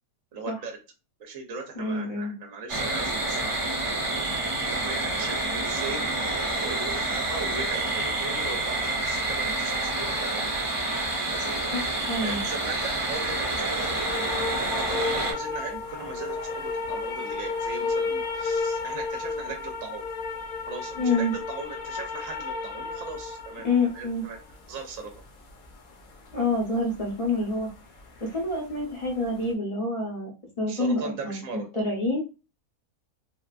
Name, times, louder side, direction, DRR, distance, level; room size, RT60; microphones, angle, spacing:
voice 1, 0.3-0.8 1.2-4.1 4.3-6.2 6.6-10.5 11.3-11.8 12.2-14.0 14.2-20.0 20.7-24.4 24.7-25.1 30.7-31.7, right 4 dB, 65° right, 3 dB, 0.9 m, -38 dB
voice 2, 1.8-2.3 11.7-12.4 21.0-21.3 23.6-24.2 26.3-27.7 28.2-30.3 30.6-31.4 31.7-32.2, left 2 dB, 40° left, -1 dB, 0.5 m, -27 dB
sound 1, 2.7-15.3, right 2 dB, 30° right, 0.6 m, -28 dB
sound 2, 13.7-28.7 29.0-29.4, left 4 dB, 70° left, 1.2 m, -33 dB
3.4 x 2.4 x 2.3 m, 0.30 s
omnidirectional pair, 1.6 m